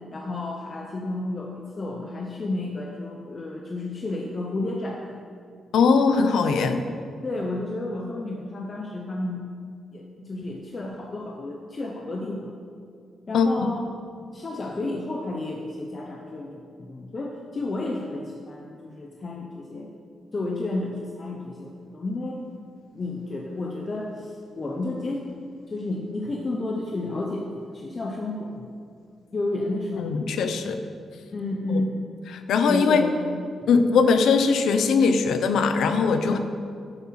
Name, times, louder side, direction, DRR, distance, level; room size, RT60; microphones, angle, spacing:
voice 1, 0.1-5.2 7.2-9.5 9.9-12.5 13.3-13.9 14.3-19.9 20.3-22.4 22.9-25.3 25.7-28.6 29.3-30.3 31.3-31.9 32.7-33.4 36.3-36.4, left 2 dB, 25° left, 0 dB, 0.8 m, -31 dB
voice 2, 5.7-6.8 13.3-13.7 30.0-30.8 31.7-31.8 32.5-33.0 33.7-36.4, left 5 dB, 80° left, 8 dB, 0.8 m, -20 dB
12.0 x 7.9 x 5.8 m, 2.3 s
wide cardioid pair, 175°, 0 cm